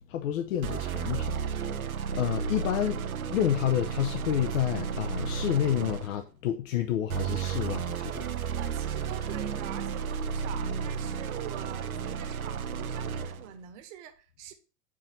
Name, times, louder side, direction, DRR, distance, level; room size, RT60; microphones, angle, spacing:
voice 1, 0.1-1.8 2.1-3.0 3.3-8.2, left 11 dB, 65° left, 0.8 m, -29 dB
sound 1, 0.6-6.2 7.1-13.5, right 6 dB, 85° right, 0.7 m, -33 dB
voice 2, 8.6-14.5, right 11 dB, 55° right, 1.3 m, -45 dB
4.9 x 3.8 x 5.8 m
figure-of-eight pair, 90°, 41 cm